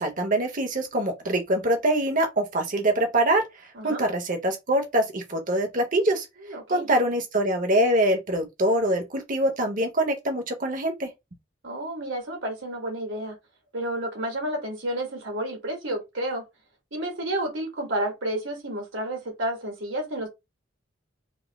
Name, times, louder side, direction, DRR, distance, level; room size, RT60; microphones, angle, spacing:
voice 1, 0.0-3.4 3.8-6.2 6.7-11.1, right 1 dB, 45° right, 1.1 m, -24 dB
voice 2, 3.7-4.1 6.5-6.9 11.6-13.3 13.7-16.4 16.9-20.3, right 1 dB, 85° right, 2.1 m, -30 dB
4.2 x 2.1 x 3.5 m
head